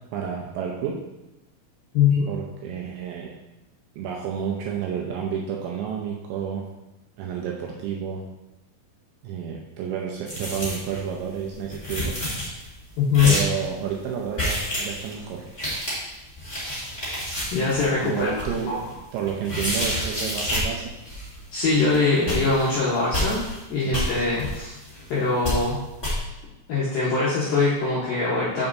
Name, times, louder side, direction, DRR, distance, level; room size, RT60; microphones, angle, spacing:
voice 1, 0.1-1.0 2.3-3.3 4.0-6.7 7.2-8.2 9.2-12.2 13.2-15.5 18.0-20.9 23.9-24.0, right 7 dB, 80° right, -1 dB, 2.6 m, -30 dB
voice 2, 1.9-2.3 13.0-13.4 17.5-18.8 21.5-23.4 23.7-24.7 25.1-25.8 26.7-28.7, left 4 dB, 75° left, -7 dB, 2.1 m, -22 dB
sound 1, 10.3-11.0 11.3-11.4 11.6-12.7 13.1-13.7 14.3-15.1 15.5-20.7 21.1-21.4 21.7-21.9 22.2-23.6 23.9-25.1 25.4-25.7 26.0-26.2, equal, 45° left, 0.5 m, -29 dB
7.1 x 6.8 x 2.6 m, 0.95 s
omnidirectional pair, 5.7 m